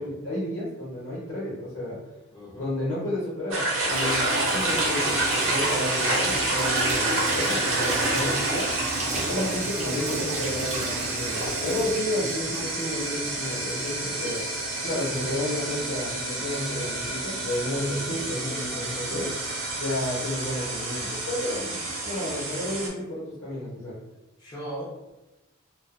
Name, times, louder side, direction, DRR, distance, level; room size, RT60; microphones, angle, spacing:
voice 1, 0.0-2.0 2.6-8.7 9.1-14.4 14.8-19.3 19.8-23.9, left 1 dB, 60° left, -9 dB, 0.9 m, -31 dB
voice 2, 2.3-2.7 7.8-8.1 9.1-9.5 12.0-12.1 18.1-18.2 19.2-19.3 21.5-21.6 24.4-25.1, equal, 20° left, -7 dB, 0.6 m, -39 dB
sound 1, 3.5-22.9, right 2 dB, 70° right, 0.7 m, -28 dB
Water tap faucet / Sink (filling or washing), 3.9-21.4, right 2 dB, 35° right, 0.3 m, -37 dB
2.4 x 2.2 x 2.4 m, 1.0 s
head